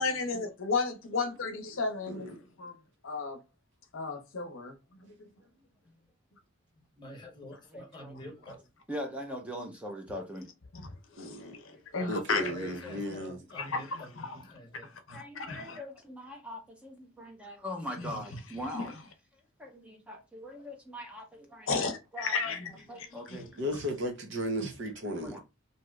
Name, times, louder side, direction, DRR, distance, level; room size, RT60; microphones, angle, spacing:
voice 1, 0.0-2.7 3.0-3.4 3.9-4.7 5.0-5.1 11.1-12.5 13.5-14.3 15.1-15.8 18.7-18.8 21.7-22.7 23.3-23.4 24.6-24.7, left 4 dB, 70° left, 0.7 m, -33 dB
voice 2, 6.7-8.6 11.9-14.9, equal, 20° left, 0.9 m, -47 dB
voice 3, 7.7-8.1 8.9-10.5 11.7-12.1 15.1-19.0 19.6-21.8 22.1-22.4 22.9-23.5 25.0-25.4, equal, 5° right, 0.6 m, -41 dB
voice 4, 11.2-11.6 12.1-13.4 23.6-25.4, equal, 60° right, 0.7 m, -35 dB
2.7 x 2.4 x 3.1 m
head